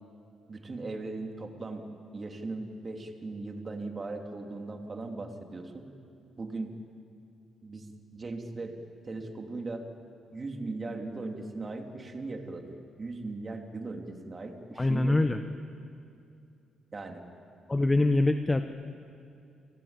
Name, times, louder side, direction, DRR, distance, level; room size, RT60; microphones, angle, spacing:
voice 1, 0.5-5.9 6.4-6.8 7.6-8.8 9.0-9.9 10.3-15.4 16.9-17.2, right 3 dB, 35° right, 3 dB, 3.0 m, -38 dB
voice 2, 14.8-15.4 17.7-18.6, left 2 dB, 20° left, 8 dB, 1.0 m, -24 dB
29.5 x 18.5 x 9.0 m, 2.5 s
cardioid pair, 90°, 0 cm